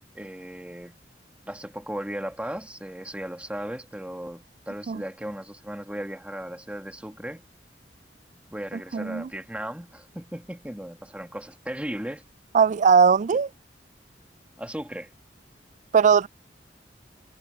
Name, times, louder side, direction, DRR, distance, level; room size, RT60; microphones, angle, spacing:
voice 1, 0.1-1.0 1.5-7.4 8.5-12.2 14.6-15.1, right 1 dB, 10° right, 1.8 m, -36 dB
voice 2, 8.9-9.3 12.5-13.5 15.9-16.3, right 6 dB, 45° right, 0.3 m, -19 dB
head